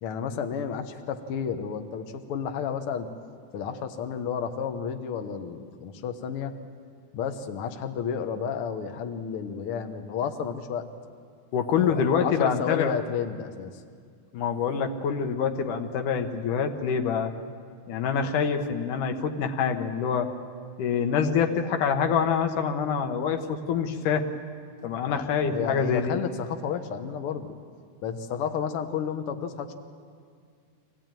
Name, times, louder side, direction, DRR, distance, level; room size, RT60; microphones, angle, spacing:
voice 1, 0.0-3.1 3.5-6.5 7.1-10.9 11.8-13.7 25.0-27.5 28.0-29.8, left 7 dB, 60° left, 6 dB, 1.7 m, -31 dB
voice 2, 11.5-12.9 14.3-17.3 17.9-20.3 20.8-24.2 24.8-26.2, left 6 dB, 90° left, 5 dB, 2.8 m, -26 dB
25.0 x 17.5 x 9.1 m, 2.1 s
omnidirectional pair, 3.5 m